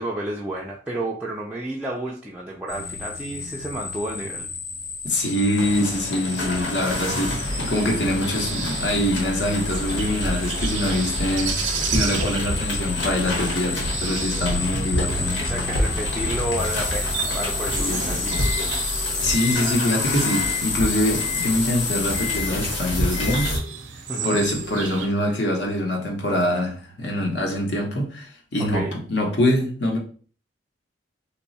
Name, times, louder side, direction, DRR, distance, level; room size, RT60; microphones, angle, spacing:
voice 1, 0.0-4.5 15.4-18.6 24.1-24.4 28.6-29.0, right 1 dB, 5° right, 0.3 m, -31 dB
sound 1, 2.7-22.4, left 4 dB, 50° left, 0.5 m, -31 dB
voice 2, 5.0-15.5 17.6-18.4 19.2-23.6 24.2-30.0, left 1 dB, 70° left, 0.9 m, -24 dB
sound 2, 5.6-23.6, left 1 dB, 85° left, 1.3 m, -28 dB
sound 3, 6.7-25.1, right 6 dB, 90° right, 0.6 m, -35 dB
3.0 x 2.2 x 4.0 m
head